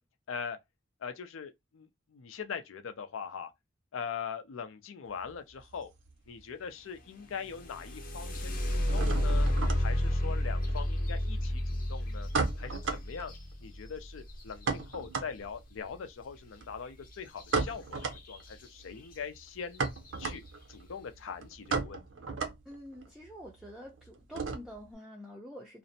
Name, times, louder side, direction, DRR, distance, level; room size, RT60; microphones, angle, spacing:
voice 1, 1.0-3.5 3.9-5.9 6.3-9.5 9.7-12.3 12.6-13.3 13.6-19.9 20.2-20.4 20.7-22.4, left 6 dB, 90° left, 0.5 m, -42 dB
sound 1, 5.1-6.7 7.0-7.7 7.9-24.9, right 4 dB, 75° right, 0.5 m, -37 dB
sound 2, 7.5-15.3 17.4-17.5 18.0-18.5 19.1-19.2 19.7-20.1, left 1 dB, 45° left, 0.6 m, -31 dB
voice 2, 22.7-25.8, equal, ahead, 0.4 m, -47 dB
2.5 x 2.0 x 2.6 m
head